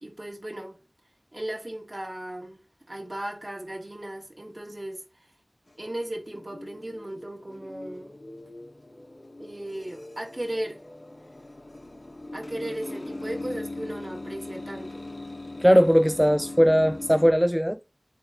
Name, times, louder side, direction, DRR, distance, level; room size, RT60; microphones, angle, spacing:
voice 1, 0.0-0.8 1.3-2.6 2.9-5.0 5.8-8.1 9.4-10.8 12.3-15.1, right 1 dB, 50° right, 2.9 m, -36 dB
sound 1, 5.7-17.3, left 2 dB, 75° left, 2.2 m, -40 dB
voice 2, 15.6-17.8, equal, ahead, 0.3 m, -19 dB
8.4 x 3.4 x 5.7 m
wide cardioid pair, 40°, 0 cm